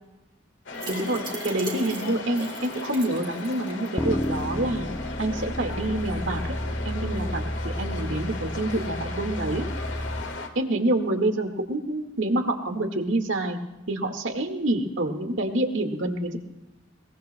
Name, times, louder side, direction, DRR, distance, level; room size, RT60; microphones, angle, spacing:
sound 1, 0.7-10.5, left 3 dB, 70° left, 1.6 m, -37 dB
sound 2, 0.7-3.9 4.2-4.3 4.6-4.7, right 2 dB, 25° right, 1.9 m, -37 dB
voice 1, 0.9-4.9 5.2-6.4 6.9-9.6 10.6-13.6 13.9-16.4, right 1 dB, 75° right, 4 dB, 1.8 m, -27 dB
sound 3, 4.0-10.2, equal, 10° left, 0.7 m, -31 dB
22.0 x 21.0 x 2.2 m, 0.98 s
head